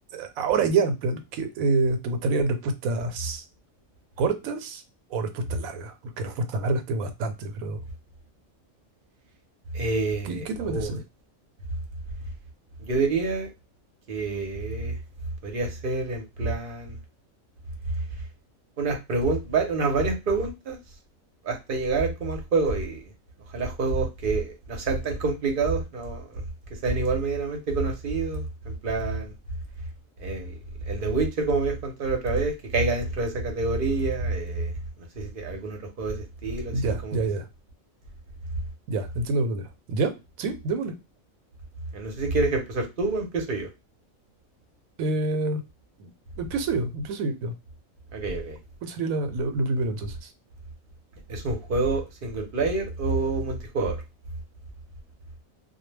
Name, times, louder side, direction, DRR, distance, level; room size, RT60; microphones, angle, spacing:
voice 1, 0.1-3.4 4.2-4.8 5.1-7.8 10.2-11.0 36.7-37.5 38.9-41.0 45.0-45.6 46.0-46.1 46.4-47.5 48.8-50.3, right 3 dB, 85° right, 8 dB, 1.0 m, -27 dB
voice 2, 9.7-11.0 12.8-13.5 14.1-15.0 15.4-17.0 18.8-20.8 21.4-23.0 23.5-26.4 26.8-29.3 30.2-30.6 30.9-34.7 35.0-37.2 41.9-43.7 48.1-48.6 51.3-54.0, right 3 dB, 50° right, 3 dB, 0.7 m, -27 dB
2.2 x 2.1 x 3.1 m, 0.24 s
omnidirectional pair, 1.4 m